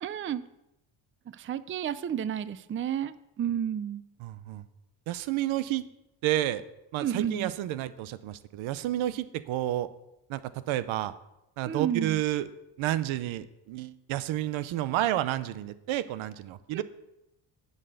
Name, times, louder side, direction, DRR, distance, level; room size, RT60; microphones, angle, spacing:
voice 1, 0.0-0.4 1.3-4.0 7.0-7.5 11.6-12.2 16.7-16.8, right 9 dB, 30° right, 15 dB, 0.4 m, -31 dB
voice 2, 4.2-4.6 5.1-5.8 6.2-6.6 6.9-9.9 10.3-11.1 11.6-12.5 12.8-16.8, right 13 dB, 90° right, 15 dB, 0.8 m, -30 dB
11.0 x 6.7 x 6.6 m, 0.87 s
cardioid pair, 120°, 46 cm